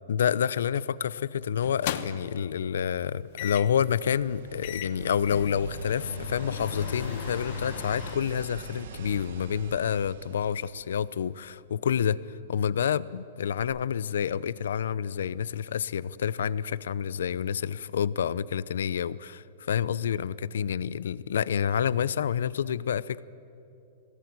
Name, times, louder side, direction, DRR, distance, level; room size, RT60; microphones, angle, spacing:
voice 1, 0.1-23.2, left 8 dB, 80° left, 19 dB, 0.6 m, -28 dB
sound 1, 0.7-1.0 1.6-2.4 3.4-3.8 4.3-4.4 4.6-8.2, left 11 dB, 40° left, 0.9 m, -36 dB
sound 2, 3.1-11.4 13.6-13.7, right 6 dB, 65° right, 1.6 m, -43 dB
21.0 x 17.5 x 9.6 m, 2.7 s
hypercardioid pair, 170°, 0 cm